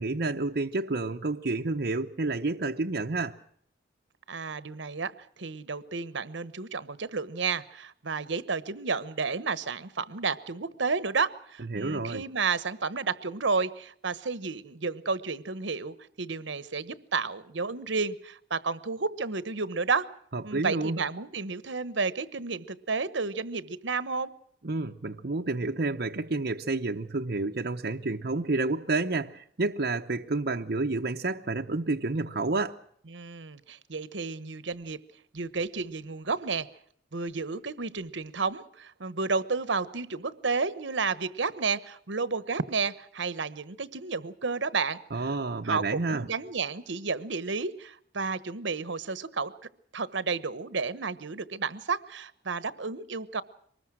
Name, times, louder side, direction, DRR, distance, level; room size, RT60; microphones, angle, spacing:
voice 1, 0.0-3.4 11.7-12.2 20.3-21.0 24.6-32.8 45.1-46.3, right 3 dB, 55° right, 3 dB, 0.8 m, -30 dB
voice 2, 4.3-5.1 5.4-20.1 20.4-24.3 33.1-35.0 35.3-36.7 37.1-45.3 45.6-49.5 49.9-53.4, right 4 dB, 75° right, 15 dB, 1.1 m, -31 dB
24.0 x 20.0 x 6.2 m, 0.66 s
head